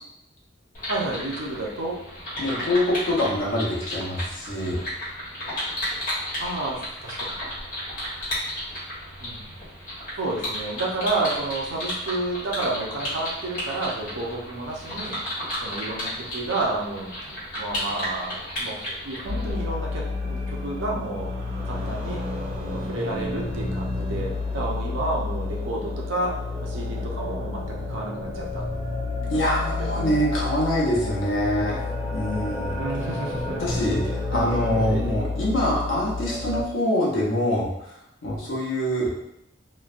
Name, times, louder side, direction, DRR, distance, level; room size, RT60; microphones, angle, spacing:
sound 1, 0.7-19.5, equal, 45° left, 1.2 m, -33 dB
voice 1, 0.9-2.0 6.4-7.3 9.2-9.5 10.2-15.2 15.6-21.4 21.7-22.2 22.7-28.6 29.8-30.2 32.8-33.6 34.3-35.0, right 2 dB, 85° right, -2 dB, 0.6 m, -31 dB
voice 2, 2.4-4.8 29.3-31.8 32.1-32.8 33.6-38.0 38.2-39.1, left 1 dB, 90° left, -4 dB, 0.9 m, -25 dB
sound 2, 19.3-36.6, left 3 dB, 40° right, 1.4 m, -30 dB
3.1 x 2.2 x 2.4 m, 0.80 s
head